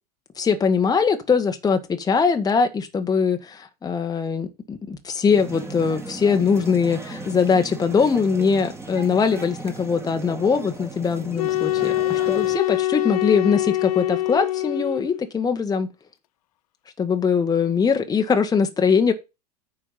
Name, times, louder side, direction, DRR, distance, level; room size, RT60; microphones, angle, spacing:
voice 1, 0.4-15.9 17.0-19.1, left 5 dB, 20° left, 1.5 m, -21 dB
sound 1, 5.3-12.6, right 3 dB, 10° right, 2.5 m, -36 dB
sound 2, 11.3-15.3, left 16 dB, 65° left, 0.5 m, -24 dB
9.5 x 4.9 x 7.5 m
figure-of-eight pair, 85°, 21 cm